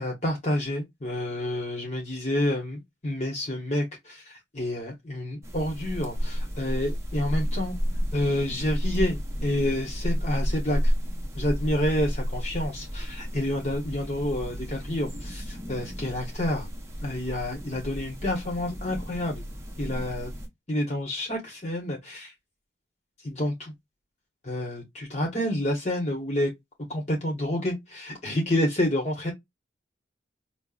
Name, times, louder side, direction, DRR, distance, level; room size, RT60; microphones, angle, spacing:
voice 1, 0.0-7.8 8.1-10.9 11.4-16.7 17.0-19.4 19.8-20.3 20.7-22.3 23.2-23.7 24.4-26.5 26.9-29.3, left 1 dB, 35° left, 0.9 m, -29 dB
sound 1, 5.4-20.5, equal, 15° right, 0.7 m, -32 dB
5.2 x 2.0 x 2.4 m
head